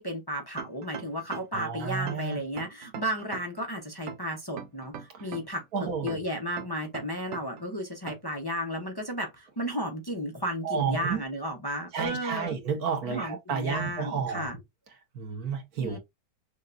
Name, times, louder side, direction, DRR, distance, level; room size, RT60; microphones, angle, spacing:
voice 1, 0.0-12.6 13.1-14.6 15.8-16.0, equal, 25° left, 0.5 m, -34 dB
sound 1, 0.6-1.6 2.1-3.6 4.1-5.6 6.1-7.6 8.1-8.4, right 7 dB, 90° right, 0.6 m, -41 dB
voice 2, 1.5-2.4 5.7-6.2 10.6-11.2 11.9-14.5 15.1-16.0, right 6 dB, 60° right, 1.7 m, -31 dB
6.3 x 2.3 x 2.5 m
omnidirectional pair, 1.8 m